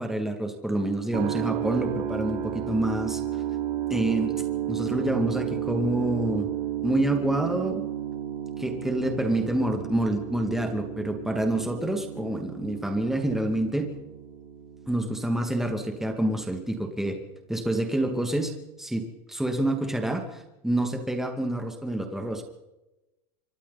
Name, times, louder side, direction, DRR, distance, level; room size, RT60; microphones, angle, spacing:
voice 1, 0.0-3.2 3.9-4.3 4.7-6.5 6.8-7.8 8.6-13.9 14.9-17.2 17.5-18.5 18.8-22.4, right 1 dB, ahead, 4 dB, 2.5 m, -27 dB
sound 1, 1.1-17.1, right 11 dB, 50° right, 3.2 m, -33 dB
25.5 x 25.0 x 4.2 m, 0.99 s
supercardioid pair, 145°, 19 cm